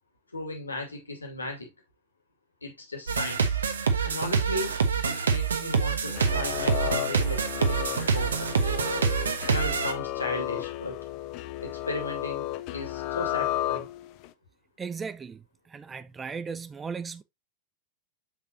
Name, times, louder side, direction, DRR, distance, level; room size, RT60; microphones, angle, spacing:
voice 1, 0.3-1.7 2.6-3.6 4.0-8.7 9.5-11.1 11.6-13.9, left 2 dB, 80° left, 2.4 m, -36 dB
sound 1, 3.1-9.9, right 5 dB, 70° right, 1.3 m, -26 dB
sound 2, 6.1-14.3, left 14 dB, 45° left, 0.6 m, -33 dB
voice 2, 14.8-15.4 15.7-17.2, right 5 dB, 15° right, 0.7 m, -36 dB
7.2 x 6.8 x 2.8 m
figure-of-eight pair, 90°, 0 cm